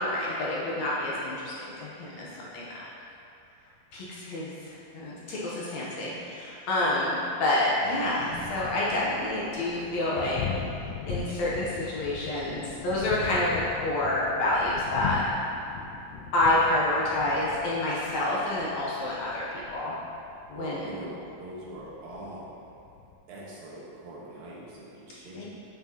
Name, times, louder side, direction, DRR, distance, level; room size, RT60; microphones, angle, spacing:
voice 1, 0.0-1.5 1.8-2.8 3.9-10.4 11.1-15.2 16.3-19.9 20.5-20.9 25.4-25.5, left 1 dB, 70° left, -6 dB, 1.7 m, -28 dB
voice 2, 0.8-1.2 7.8-8.3 8.9-9.7 19.1-19.2 20.5-22.5 23.3-25.5, right 1 dB, 75° right, -6 dB, 3.0 m, -43 dB
Thunder, 7.9-23.1, left 6 dB, 85° left, 1.9 m, -40 dB
9.6 x 6.2 x 2.9 m, 2.7 s
omnidirectional pair, 4.3 m